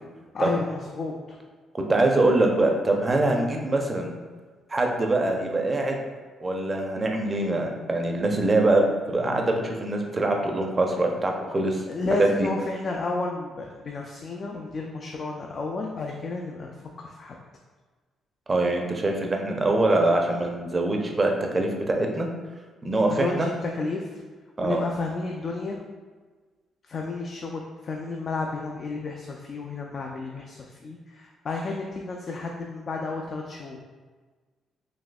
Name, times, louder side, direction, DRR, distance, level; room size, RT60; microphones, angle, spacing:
voice 1, 0.3-1.4 11.9-17.3 23.0-23.4 23.6-24.2 24.6-25.8 26.9-33.8, left 3 dB, 50° left, 0 dB, 0.3 m, -32 dB
voice 2, 1.9-4.1 4.7-6.0 6.4-11.8 12.2-12.5 18.5-22.3 22.8-23.5 24.6-24.8, right 2 dB, 30° right, 2 dB, 0.5 m, -23 dB
4.0 x 2.7 x 2.2 m, 1.4 s
cardioid pair, 90°, 0 cm